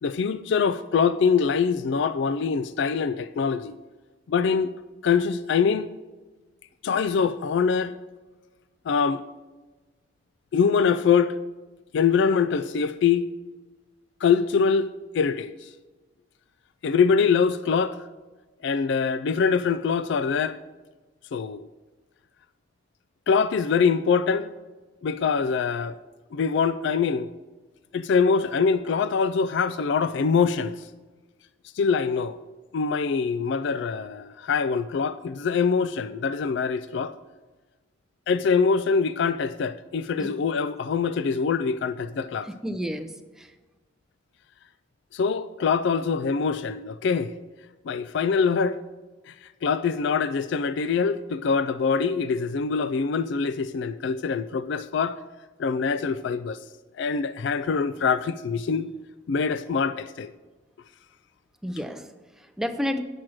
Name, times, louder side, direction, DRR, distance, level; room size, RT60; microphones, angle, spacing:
voice 1, 0.0-3.7 4.3-4.7 5.0-5.9 6.8-7.9 8.9-9.2 10.5-11.4 11.9-13.3 14.2-15.7 16.8-18.0 18.6-20.6 21.3-21.7 23.3-24.5 25.0-26.0 26.3-27.3 27.9-30.9 31.7-32.4 32.7-37.1 38.3-42.5 45.1-47.3 47.9-48.8 49.3-55.2 55.6-56.6 57.0-58.9 59.3-60.3, left 5 dB, 65° left, 0.3 m, -24 dB
voice 2, 42.4-43.5 61.6-63.0, equal, 5° right, 0.5 m, -31 dB
8.7 x 6.2 x 6.2 m
head